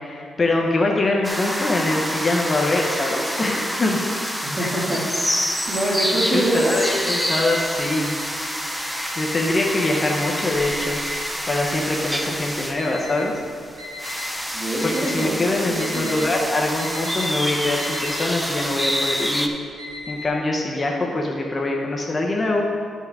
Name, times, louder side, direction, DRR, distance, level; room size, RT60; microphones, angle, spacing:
voice 1, 0.0-4.1 4.6-4.7 6.3-8.2 9.2-11.0 11.5-13.3 14.8-19.5 20.1-22.6, left 2 dB, 25° left, 0 dB, 0.8 m, -23 dB
sound 1, 1.2-19.5, equal, 5° right, 0.5 m, -27 dB
voice 2, 4.4-5.0 5.7-6.8 14.5-16.2, right 1 dB, 30° right, -4 dB, 2.0 m, -24 dB
Alarm, 5.5-6.4 6.7-8.4 8.8-9.4 9.8-14.3 14.8-15.4 15.7-16.3 16.6-20.3, left 3 dB, 80° right, 2.0 m, -38 dB
12.0 x 5.5 x 3.6 m, 2.2 s
cardioid pair, 125°, 0 cm